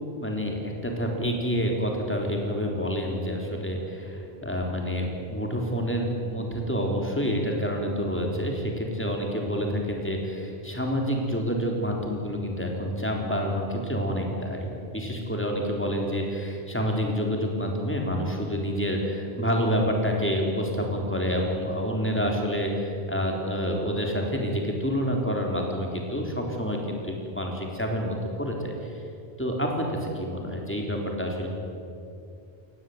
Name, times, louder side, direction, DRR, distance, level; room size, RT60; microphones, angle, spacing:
voice 1, 0.1-29.0 29.4-31.5, equal, 10° left, 1 dB, 3.8 m, -28 dB
22.5 x 18.0 x 9.4 m, 2.6 s
omnidirectional pair, 1.1 m